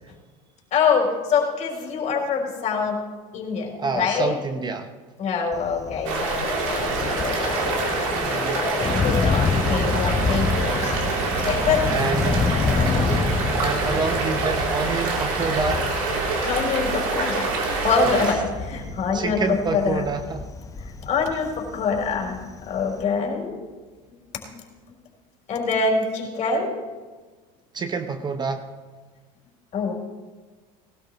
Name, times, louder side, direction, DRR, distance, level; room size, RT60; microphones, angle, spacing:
voice 1, 0.7-3.0 3.3-4.4 5.2-11.0 11.4-11.8 12.7-13.2 16.4-20.1 21.0-23.6 24.5-24.6 25.5-26.8 29.7-29.9, left 5 dB, 40° left, 0 dB, 3.9 m, -25 dB
voice 2, 3.8-4.9 8.2-8.6 11.9-12.5 13.6-15.9 18.1-18.2 19.1-20.5 27.7-28.7, right 4 dB, 25° right, 8 dB, 0.8 m, -27 dB
Thunder, 5.5-23.0, left 5 dB, 20° left, 0.6 m, -29 dB
sound 1, 6.0-18.3, right 3 dB, 85° right, 3.3 m, -26 dB
sound 2, 10.0-24.1, right 7 dB, 50° right, 1.2 m, -37 dB
19.5 x 12.5 x 3.1 m, 1.4 s
supercardioid pair, 110°, 17 cm